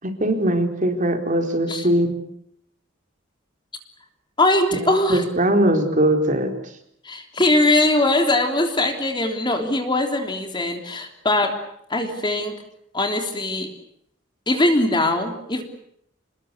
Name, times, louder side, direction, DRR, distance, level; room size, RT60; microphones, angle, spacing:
voice 1, 0.0-2.2 4.7-6.6, right 1 dB, 40° right, 5 dB, 4.2 m, -21 dB
voice 2, 4.4-5.3 7.0-11.6 11.9-12.5 12.9-13.7 14.5-15.6, left 1 dB, 25° left, 5 dB, 3.4 m, -21 dB
28.5 x 20.5 x 8.3 m, 0.72 s
head